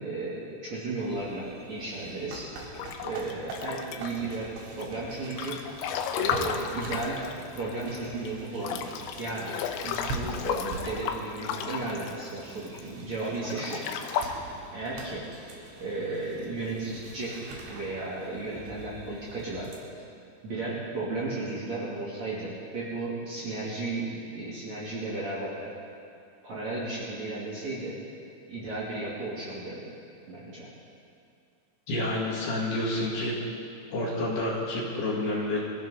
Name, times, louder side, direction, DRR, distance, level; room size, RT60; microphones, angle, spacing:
voice 1, 0.0-2.6 3.0-13.9 14.7-15.3 15.8-19.7 20.4-25.8 26.4-28.0 28.5-29.9 30.3-30.7, right 2 dB, 40° right, -8 dB, 3.3 m, -34 dB
sound 1, 1.0-19.8, right 3 dB, 70° right, 4.5 m, -44 dB
Breathing / Bathtub (filling or washing) / Splash splatter, 2.8-4.3 4.8-8.0 8.3-8.4 8.6-12.8 13.4-14.3, left 8 dB, 90° left, 3.6 m, -33 dB
voice 2, 31.9-33.6 33.9-35.6, left 1 dB, 55° left, -4 dB, 3.7 m, -29 dB
24.0 x 15.0 x 4.0 m, 2.4 s
omnidirectional pair, 5.9 m